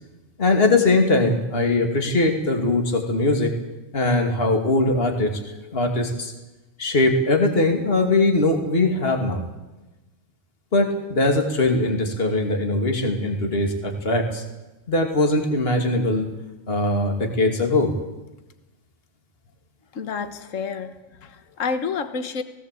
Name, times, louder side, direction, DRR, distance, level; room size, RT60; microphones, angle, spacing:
voice 1, 0.4-3.5 3.9-6.3 6.8-9.4 10.7-14.4 14.9-16.3 16.7-17.9, left 2 dB, 40° left, 4 dB, 2.7 m, -21 dB
voice 2, 19.9-22.4, left 5 dB, 60° left, 10 dB, 1.6 m, -29 dB
18.0 x 18.0 x 8.4 m, 1.1 s
omnidirectional pair, 1.5 m